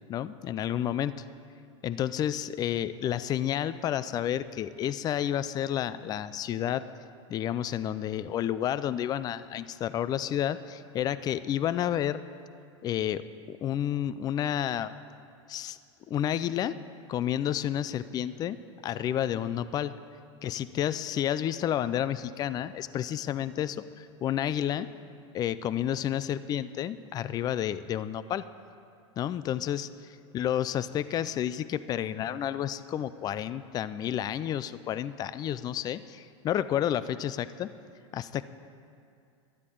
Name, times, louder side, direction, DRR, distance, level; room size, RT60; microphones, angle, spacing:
voice 1, 0.1-1.1 1.8-6.9 7.3-12.2 12.8-14.9 15.5-15.8 16.1-16.8 17.1-18.6 18.8-19.9 20.4-24.9 25.3-28.5 29.2-37.7 38.1-38.4, left 10 dB, 25° left, 15 dB, 0.4 m, -30 dB
12.0 x 8.3 x 9.2 m, 2.4 s
supercardioid pair, 125°, 16 cm